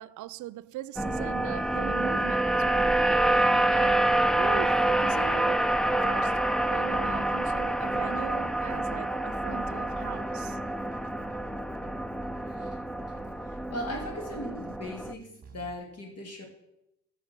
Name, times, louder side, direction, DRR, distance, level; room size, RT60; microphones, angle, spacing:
voice 1, 0.0-3.0 3.4-4.0 4.4-6.4 6.7-10.6, right 15 dB, 75° right, 0.5 m, -40 dB
sound 1, 1.0-15.1, right 1 dB, ahead, 0.4 m, -27 dB
Keyboard (musical), 3.7-15.7, right 7 dB, 30° right, 1.3 m, -51 dB
voice 2, 12.4-12.8 13.5-16.5, left 1 dB, 55° left, 2.7 m, -39 dB
13.5 x 5.9 x 6.0 m
cardioid pair, 90°, 30 cm